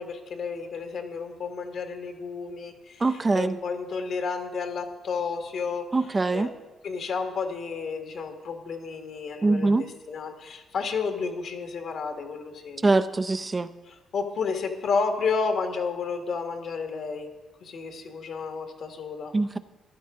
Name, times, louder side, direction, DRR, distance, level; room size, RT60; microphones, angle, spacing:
voice 1, 0.0-6.5 6.8-12.8 13.9-17.3 17.6-19.3, left 5 dB, 65° left, 4 dB, 1.7 m, -31 dB
voice 2, 3.0-3.6 5.9-6.5 9.4-9.9 12.8-13.7 19.3-19.6, right 3 dB, 25° right, 11 dB, 0.5 m, -23 dB
14.5 x 11.5 x 3.8 m, 1.1 s
cardioid pair, 90°, 0 cm